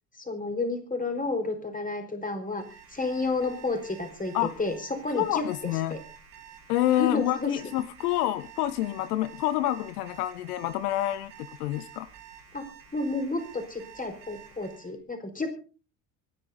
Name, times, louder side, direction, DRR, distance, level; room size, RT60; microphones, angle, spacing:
voice 1, 0.2-5.5 5.9-6.0 6.9-7.5 12.5-12.7 12.9-15.6, left 3 dB, 15° left, 6 dB, 5.1 m, -31 dB
Alarm, 2.4-14.9, right 9 dB, 75° right, 5.9 m, -50 dB
voice 2, 5.1-6.0 6.7-12.1, left 14 dB, 75° left, 16 dB, 0.9 m, -28 dB
25.5 x 10.0 x 4.1 m, 0.37 s
hypercardioid pair, 60°, 46 cm